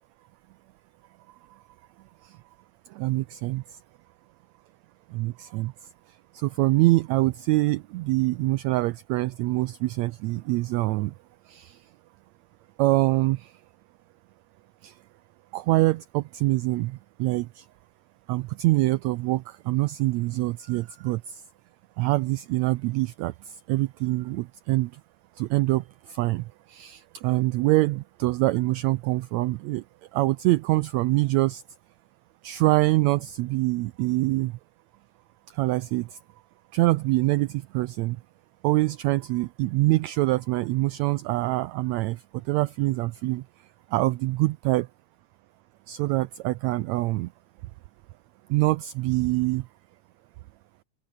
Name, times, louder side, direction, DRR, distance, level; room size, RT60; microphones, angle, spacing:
voice 1, 2.9-3.6 5.1-5.7 6.3-11.1 11.5-11.8 12.8-13.5 14.8-14.9 15.5-17.6 18.3-21.4 22.0-23.3 23.7-24.9 25.4-29.8 30.1-31.6 32.4-34.5 35.5-36.2 36.7-38.2 38.6-43.4 43.9-44.9 45.9-47.3 48.5-49.6, right 19 dB, 85° right, 1.6 m, -25 dB
open air
omnidirectional pair, 3.7 m